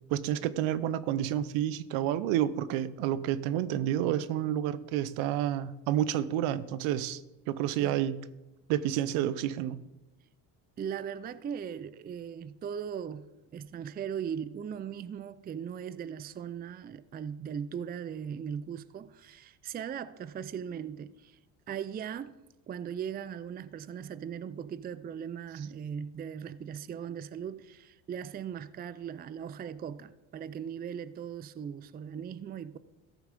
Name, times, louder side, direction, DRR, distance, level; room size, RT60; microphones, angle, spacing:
voice 1, 0.1-7.2 7.5-8.3 8.7-9.8, right 11 dB, 75° right, 0.8 m, -29 dB
voice 2, 10.8-13.3 13.5-21.4 21.7-22.3 22.7-32.8, right 8 dB, 20° right, 0.4 m, -39 dB
14.0 x 6.2 x 5.1 m
supercardioid pair, 75°, 49 cm